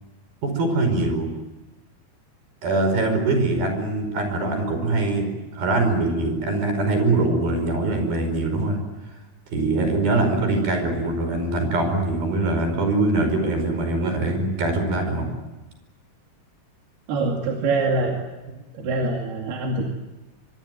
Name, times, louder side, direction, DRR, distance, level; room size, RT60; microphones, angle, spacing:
voice 1, 0.4-1.3 2.6-5.3 5.5-8.8 9.5-15.3, right 2 dB, 70° right, 6 dB, 7.0 m, -23 dB
voice 2, 17.1-18.2 18.7-19.9, right 3 dB, 90° right, 1 dB, 4.4 m, -24 dB
24.0 x 24.0 x 9.3 m, 1.1 s
omnidirectional pair, 4.4 m